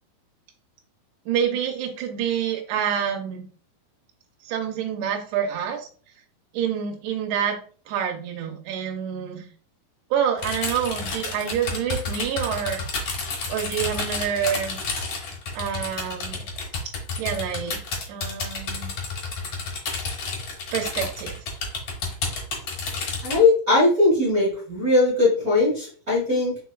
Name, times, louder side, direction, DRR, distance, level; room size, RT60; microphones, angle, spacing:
voice 1, 1.3-3.4 4.4-5.9 6.5-7.6 7.9-9.5 10.1-13.1 13.5-14.8 15.6-16.4 17.2-17.8 18.1-18.9 20.7-21.4, right 8 dB, 75° right, 3 dB, 1.9 m, -27 dB
sound 1, 10.4-23.4, left 4 dB, 60° left, 1.8 m, -31 dB
voice 2, 23.2-26.6, left 2 dB, 45° right, -9 dB, 1.1 m, -20 dB
5.0 x 4.3 x 2.3 m, 0.41 s
omnidirectional pair, 4.6 m